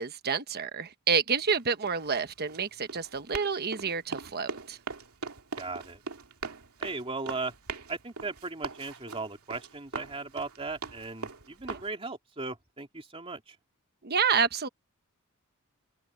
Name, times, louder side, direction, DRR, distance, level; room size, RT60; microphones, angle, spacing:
voice 1, 0.0-4.8 11.7-11.8 14.0-14.7, right 6 dB, 45° right, 1.1 m, -29 dB
Run, 1.3-11.9, right 4 dB, 80° right, 2.3 m, -41 dB
voice 2, 5.6-6.0 6.8-7.5 7.9-13.6, right 3 dB, 25° right, 2.7 m, -37 dB
open air
head